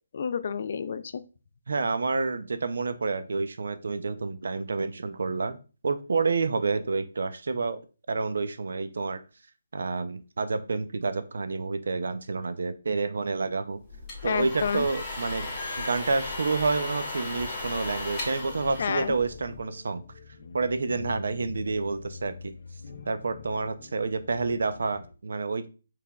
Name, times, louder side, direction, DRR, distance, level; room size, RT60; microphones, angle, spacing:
voice 1, 0.1-1.2 14.2-14.9 18.8-19.1, left 6 dB, 45° left, 12 dB, 0.3 m, -29 dB
voice 2, 1.7-5.6 5.8-7.8 8.1-9.2 9.7-13.8 14.2-15.5 15.8-20.0 20.5-22.5 23.1-25.7, right 4 dB, 70° right, 11 dB, 0.5 m, -29 dB
sound 1, 13.9-19.6, left 2 dB, 10° left, 1.9 m, -36 dB
sound 2, 18.6-25.1, left 4 dB, 60° left, 0.8 m, -45 dB
5.8 x 3.4 x 2.3 m, 0.35 s
hypercardioid pair, 170°, 0 cm